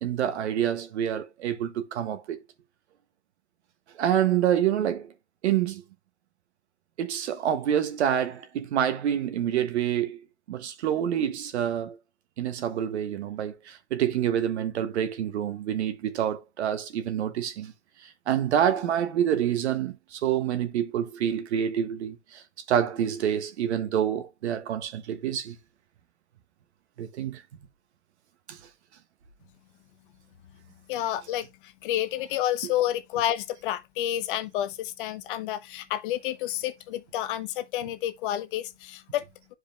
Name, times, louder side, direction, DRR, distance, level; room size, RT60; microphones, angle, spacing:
voice 1, 0.0-2.4 4.0-5.1 5.4-5.8 7.0-10.2 10.5-12.0 12.4-17.7 18.3-22.4 22.7-25.6 27.0-27.4 28.5-28.6, right 10 dB, 70° right, 1.4 m, -27 dB
voice 2, 30.9-39.5, left 12 dB, 45° left, 0.9 m, -30 dB
10.5 x 4.9 x 2.3 m
hypercardioid pair, 140°, 35 cm